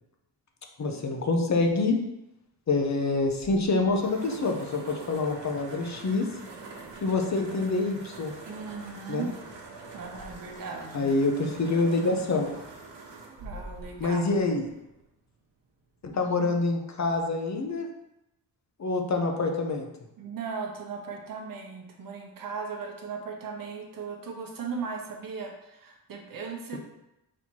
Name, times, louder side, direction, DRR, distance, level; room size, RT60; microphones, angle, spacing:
voice 1, 0.8-2.0 2.7-6.3 7.0-8.3 9.1-9.3 10.9-12.5 14.0-14.6 16.1-17.9 18.8-19.8, left 3 dB, 40° left, 3 dB, 0.6 m, -26 dB
sound 1, 3.2-15.1, right 3 dB, 90° right, 1.0 m, -45 dB
voice 2, 8.5-9.3 9.9-11.1 13.3-14.3 20.2-26.8, right 5 dB, 55° right, 1 dB, 0.8 m, -37 dB
4.3 x 2.8 x 4.5 m, 0.88 s
wide cardioid pair, 145°, 42 cm